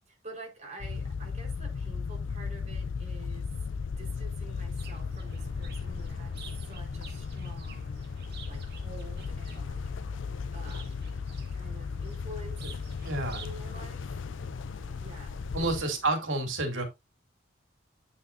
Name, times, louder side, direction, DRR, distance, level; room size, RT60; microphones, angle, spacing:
voice 1, 0.1-3.5 4.0-6.3 6.7-8.1 8.5-9.8 10.5-11.2 11.5-12.7 13.4-14.2 15.0-15.9, right 2 dB, 40° right, 4.4 m, -48 dB
sound 1, 0.8-15.8, left 5 dB, 75° left, 0.5 m, -36 dB
sound 2, 4.8-16.1, right 2 dB, 55° right, 2.3 m, -49 dB
voice 2, 13.0-13.5 15.5-16.8, right 2 dB, 85° right, 2.6 m, -29 dB
9.0 x 8.5 x 2.6 m
head